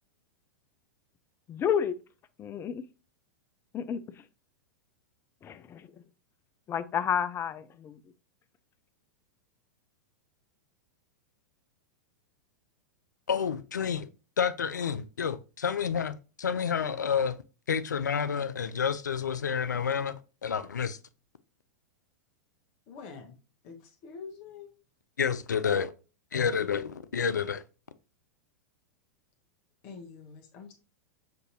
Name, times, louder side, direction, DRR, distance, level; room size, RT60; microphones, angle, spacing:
voice 1, 1.5-2.0 2.4-2.8 3.7-4.0 5.4-5.9 6.7-8.0, left 8 dB, 25° left, 0.4 m, -30 dB
voice 2, 13.3-14.1 14.4-17.4 17.7-20.2 20.4-21.0 25.2-25.9 26.3-27.6, left 7 dB, 90° left, 0.4 m, -29 dB
voice 3, 22.9-23.3 23.6-24.7 29.8-30.7, left 5 dB, 50° left, 0.9 m, -45 dB
6.6 x 2.7 x 2.7 m
hypercardioid pair, 100°, 9 cm